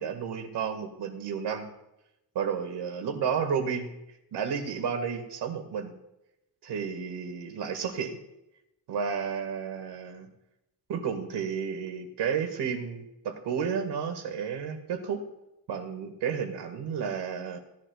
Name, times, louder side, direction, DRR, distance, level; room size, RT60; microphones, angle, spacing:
voice 1, 0.0-1.7 2.4-3.9 4.3-5.9 6.6-8.2 8.9-10.3 10.9-15.2 15.7-17.6, right 6 dB, 85° right, 6 dB, 1.9 m, -32 dB
17.5 x 11.0 x 2.4 m, 0.89 s
wide cardioid pair, 175°, 40 cm